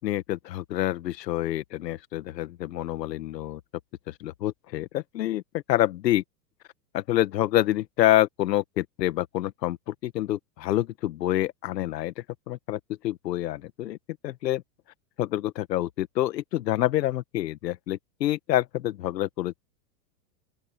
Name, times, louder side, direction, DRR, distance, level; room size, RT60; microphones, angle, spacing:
voice 1, 0.0-3.6 4.1-6.2 6.9-14.0 14.2-14.6 15.2-19.6, left 14 dB, 80° left, 1.8 m, -27 dB
open air
hypercardioid pair, 125°, 49 cm